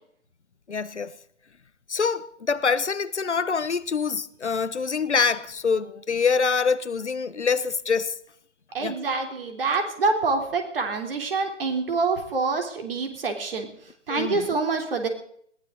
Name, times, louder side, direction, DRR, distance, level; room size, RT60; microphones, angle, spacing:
voice 1, 0.7-1.2 1.9-8.1 8.8-8.9 14.1-14.6, left 5 dB, 70° left, 1.0 m, -25 dB
voice 2, 8.7-13.7 14.1-15.1, right 4 dB, 50° right, 3.4 m, -26 dB
20.5 x 16.0 x 3.9 m
figure-of-eight pair, 130°, 35 cm